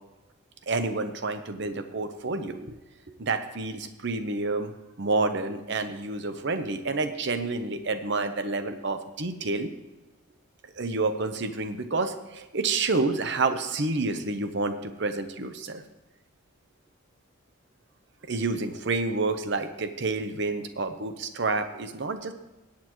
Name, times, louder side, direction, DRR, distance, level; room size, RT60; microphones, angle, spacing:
voice 1, 0.7-2.8 3.2-4.7 5.0-9.7 10.8-15.8 18.2-22.3, right 3 dB, 55° right, 9 dB, 0.8 m, -29 dB
17.5 x 8.6 x 3.1 m, 1.1 s
head